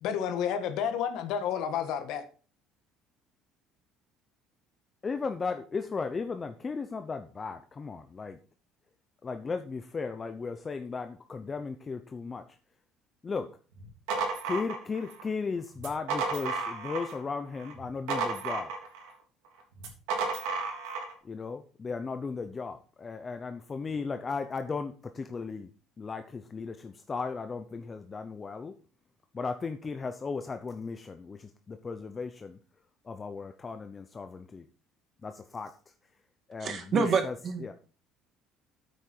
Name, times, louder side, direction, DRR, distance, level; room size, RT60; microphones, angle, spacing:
voice 1, 0.0-2.2, left 8 dB, 70° left, 8 dB, 1.6 m, -30 dB
voice 2, 5.0-8.4 9.2-12.4 13.2-13.5 14.4-18.7 21.2-25.7 26.0-28.7 29.3-32.6 33.0-34.6 35.2-35.7 36.5-37.7, left 4 dB, 25° left, 7 dB, 0.8 m, -36 dB
sound 1, 13.8-15.2 15.8-17.2 17.6-19.1 19.8-21.1, right 4 dB, 90° right, 3.4 m, -33 dB
voice 3, 36.6-37.7, right 5 dB, 40° right, 7 dB, 1.9 m, -28 dB
9.1 x 8.3 x 4.5 m, 0.38 s
cardioid pair, 130°, 0 cm